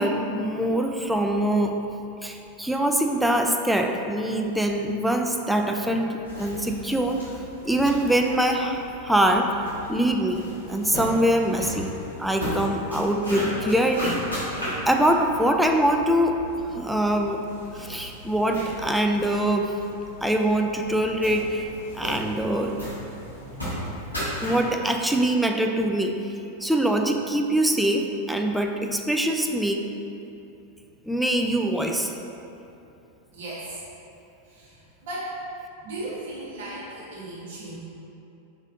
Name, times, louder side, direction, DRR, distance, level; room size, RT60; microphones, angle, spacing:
voice 1, 0.0-1.7 2.2-7.2 7.6-9.5 9.9-10.4 10.7-11.9 12.2-14.2 14.9-16.3 16.8-17.4 17.8-19.7 20.2-21.7 21.9-22.7 23.5-26.1 26.6-29.8 31.0-32.1, right 1 dB, ahead, 3 dB, 0.3 m, -23 dB
sound 1, 6.2-24.7, equal, 85° left, 1.4 m, -36 dB
voice 2, 33.3-33.8 34.5-35.4 35.8-37.8, right 1 dB, 55° right, -8 dB, 1.4 m, -36 dB
5.1 x 4.0 x 2.6 m, 2.8 s
figure-of-eight pair, 90°, 0 cm